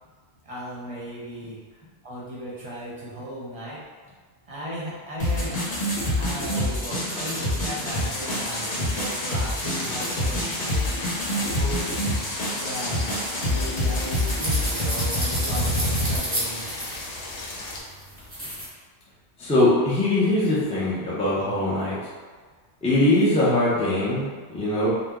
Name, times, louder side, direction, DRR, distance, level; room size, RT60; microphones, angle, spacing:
voice 1, 0.4-1.6 2.0-3.8 4.5-5.6 6.2-11.1 11.3-11.8 12.5-16.7, equal, 35° right, -7 dB, 0.8 m, -36 dB
sound 1, 5.2-16.2, left 1 dB, 55° left, 1.1 m, -27 dB
sound 2, 7.9-17.8, left 2 dB, 80° left, 0.9 m, -36 dB
sound 3, 13.2-18.7, equal, 10° right, 1.0 m, -33 dB
voice 2, 19.4-22.0 22.8-24.9, left 1 dB, 5° left, -9 dB, 0.5 m, -22 dB
2.8 x 2.2 x 3.6 m, 1.5 s
omnidirectional pair, 1.2 m